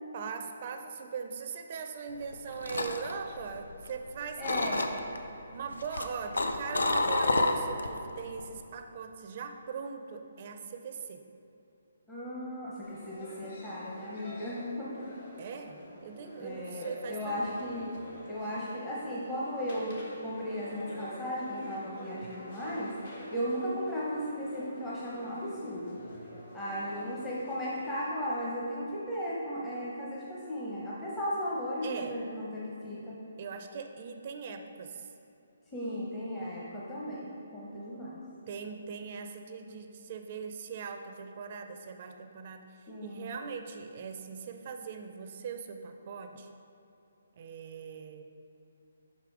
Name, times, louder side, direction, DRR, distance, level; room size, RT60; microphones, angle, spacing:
voice 1, 0.1-4.7 5.5-11.2 15.4-17.4 22.2-22.3 31.8-32.2 33.4-35.1 38.5-42.7 43.0-46.5 47.4-48.2, right 6 dB, 45° right, 6 dB, 0.4 m, -40 dB
sound 1, 2.2-4.1 4.4-5.2 5.7-8.0 8.3-8.6, left 2 dB, 85° left, 0.5 m, -29 dB
voice 2, 4.4-4.9 12.1-15.1 16.4-18.0 18.3-20.0 20.2-22.9 23.3-26.0 26.5-33.2 35.7-38.2 42.9-43.3, equal, 10° left, -8 dB, 0.8 m, -36 dB
sound 2, 12.8-28.1, equal, 55° left, 1.4 m, -48 dB
5.4 x 4.9 x 4.8 m, 2.8 s
hypercardioid pair, 150°, 0 cm